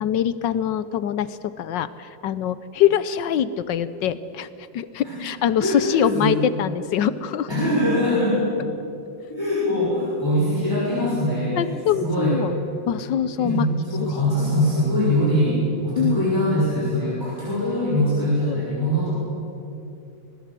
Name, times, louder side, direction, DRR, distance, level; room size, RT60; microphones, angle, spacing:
voice 1, 0.0-4.5 4.7-7.5 11.6-12.5 12.9-13.7 16.0-16.2 18.5-18.6, left 10 dB, 70° left, 15 dB, 1.2 m, -24 dB
voice 2, 5.6-6.4 7.5-8.7 9.3-12.4 13.4-19.1, equal, 10° left, -7 dB, 6.3 m, -22 dB
23.5 x 20.0 x 7.6 m, 2.8 s
omnidirectional pair, 2.3 m